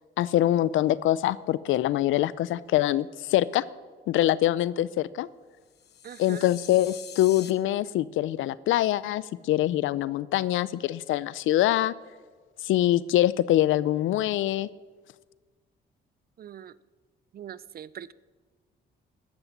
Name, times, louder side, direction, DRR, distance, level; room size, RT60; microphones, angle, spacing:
voice 1, 0.2-3.6 4.1-5.3 6.2-11.9 12.6-14.7, left 13 dB, 80° left, 0.5 m, -24 dB
sound 1, 5.7-7.5, left 8 dB, 55° left, 1.2 m, -45 dB
voice 2, 6.0-6.4 16.4-16.7 17.3-18.1, right 10 dB, 50° right, 0.5 m, -42 dB
13.5 x 10.5 x 7.4 m
cardioid pair, 90°, 20 cm